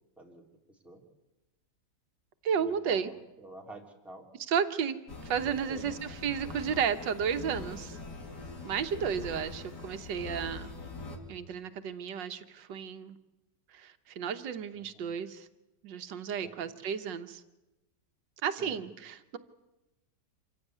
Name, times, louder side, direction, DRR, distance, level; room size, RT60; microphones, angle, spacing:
voice 1, 0.7-1.0 2.6-4.3 5.4-5.9 8.9-9.5 14.7-15.2 16.4-16.7 18.6-18.9, right 1 dB, ahead, 0 dB, 3.2 m, -50 dB
voice 2, 2.4-3.1 4.5-5.0 5.2-8.0 8.6-10.7 11.3-13.2 13.7-15.5 15.8-17.4 18.4-19.4, right 7 dB, 90° right, 9 dB, 1.7 m, -33 dB
sound 1, 5.1-11.2, left 3 dB, 65° left, 3.0 m, -43 dB
26.5 x 15.5 x 9.3 m, 1.0 s
omnidirectional pair, 1.9 m